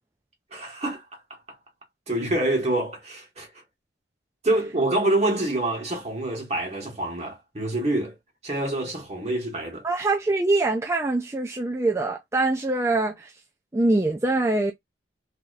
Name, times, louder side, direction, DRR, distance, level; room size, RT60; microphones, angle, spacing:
voice 1, 0.5-1.0 2.1-3.5 4.4-8.1 8.4-9.8, right 1 dB, 35° right, 1.3 m, -26 dB
voice 2, 9.8-13.3 13.7-14.7, right 2 dB, 15° right, 0.4 m, -23 dB
3.8 x 2.8 x 2.4 m
head